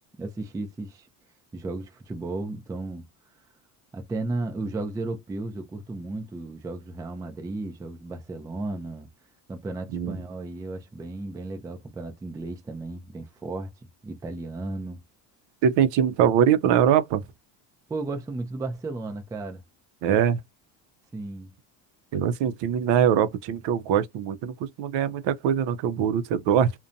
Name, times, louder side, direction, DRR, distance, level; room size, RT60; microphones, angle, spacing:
voice 1, 0.2-1.1 1.5-3.1 3.9-9.1 9.5-15.0 17.9-19.6 21.1-21.5, right 2 dB, 10° right, 0.3 m, -34 dB
voice 2, 15.6-17.2 20.0-20.4 22.1-26.7, right 8 dB, 60° right, 0.5 m, -22 dB
2.5 x 2.2 x 2.5 m
supercardioid pair, 85°, 49 cm